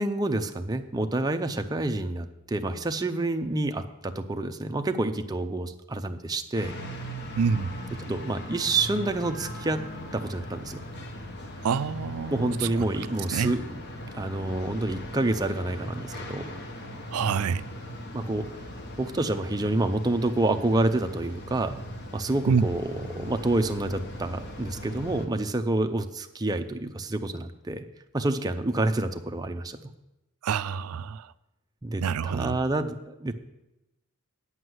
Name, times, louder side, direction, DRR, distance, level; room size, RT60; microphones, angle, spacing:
voice 1, 0.0-6.8 8.0-9.8 10.1-10.8 12.3-13.8 14.1-16.5 18.1-18.5 19.0-21.8 22.1-27.8 28.1-29.8 31.8-33.3, right 2 dB, 15° right, 0.5 m, -28 dB
sound 1, 6.5-25.3, equal, 50° left, 1.1 m, -39 dB
voice 2, 7.4-7.7 11.6-12.5 12.8-12.9 13.3-13.5 17.1-17.6 22.5-22.6 30.4-31.3 32.0-32.6, right 6 dB, 75° right, 0.4 m, -26 dB
9.7 x 5.5 x 7.8 m
head